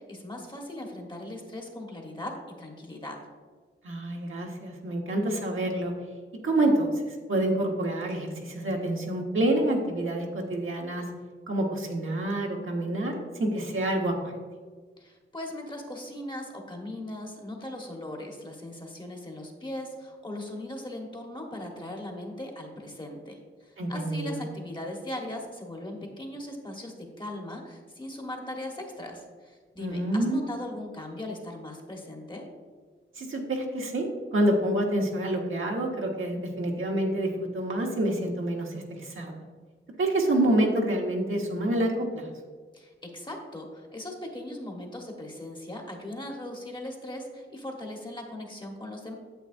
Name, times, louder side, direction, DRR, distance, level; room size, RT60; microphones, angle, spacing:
voice 1, 0.0-3.2 15.0-32.5 42.7-49.2, left 1 dB, 20° left, 1 dB, 1.2 m, -39 dB
voice 2, 3.8-5.9 6.4-11.0 11.5-14.3 23.8-24.4 29.8-30.4 33.2-39.4 40.0-42.3, right 1 dB, 70° right, 0 dB, 1.3 m, -27 dB
9.1 x 7.7 x 2.6 m, 1.5 s
wide cardioid pair, 115°, 21 cm